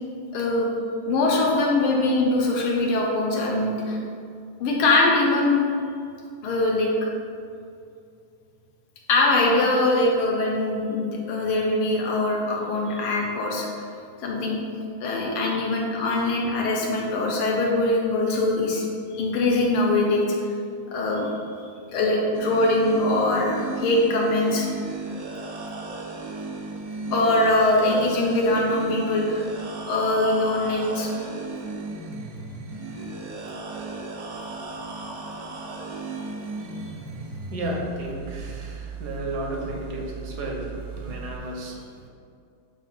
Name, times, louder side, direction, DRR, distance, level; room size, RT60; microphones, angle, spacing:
voice 1, 0.3-0.7 1.1-4.0 4.6-5.7 6.4-7.1 9.1-13.7 14.2-14.6 15.0-18.9 19.1-20.3 20.9-21.3 21.9-24.7 27.1-29.4 29.9-31.1, left 2 dB, 75° left, -1 dB, 1.8 m, -22 dB
sound 1, 22.3-41.4, right 3 dB, 80° right, 0.8 m, -35 dB
voice 2, 37.5-38.7 39.0-40.7 41.0-41.7, right 1 dB, 60° right, 0 dB, 1.2 m, -32 dB
7.2 x 2.5 x 5.6 m, 2.4 s
omnidirectional pair, 2.4 m